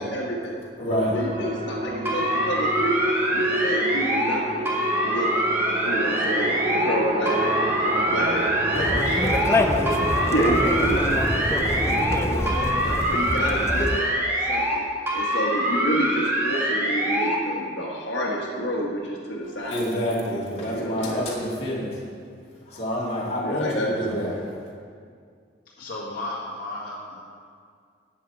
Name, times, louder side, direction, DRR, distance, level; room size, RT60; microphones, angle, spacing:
voice 1, 0.0-0.6 1.1-3.0 3.3-4.7 5.0-5.3 5.8-9.0 10.3-14.1 14.4-14.8 15.1-19.9 20.7-21.2 23.4-23.9, equal, 80° left, -3 dB, 1.6 m, -29 dB
voice 2, 0.8-1.1 8.0-8.4 19.7-22.0 22.7-24.3, equal, 35° left, -5 dB, 2.3 m, -28 dB
sound 1, 0.9-12.6, right 1 dB, 30° right, 0.6 m, -29 dB
sound 2, 2.1-4.4 4.7-7.0 7.3-9.6 9.9-12.2 12.5-14.8 15.1-17.4, right 1 dB, 15° right, 1.5 m, -25 dB
Conversation, 8.7-14.0, left 1 dB, 15° left, 0.5 m, -26 dB
voice 3, 9.0-10.4 14.7-14.8 24.0-24.3 25.8-27.2, left 2 dB, 55° left, -8 dB, 1.8 m, -35 dB
11.5 x 9.0 x 4.6 m, 2.1 s
head